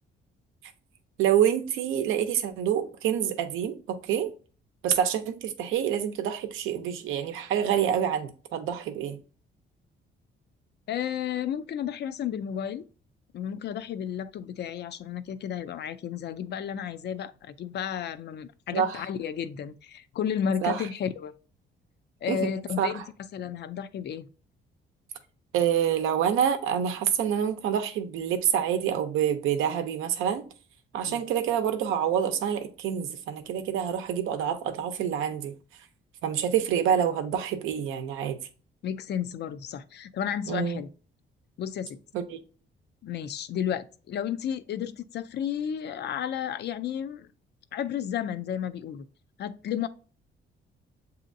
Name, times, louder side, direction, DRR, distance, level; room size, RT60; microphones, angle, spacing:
voice 1, 1.2-4.3 4.8-9.2 18.7-19.0 20.6-20.9 22.3-22.5 22.8-23.1 25.5-30.4 30.9-35.5 36.2-38.4 40.5-40.8 42.1-42.4, right 9 dB, 90° right, 0.7 m, -27 dB
voice 2, 10.9-12.8 13.3-21.3 22.2-23.0 23.3-24.3 31.1-31.2 38.8-40.9 41.6-42.0 43.0-47.3 47.7-49.1 49.4-49.9, left 9 dB, 60° left, 0.5 m, -32 dB
7.2 x 2.8 x 2.6 m
cardioid pair, 90°, 20 cm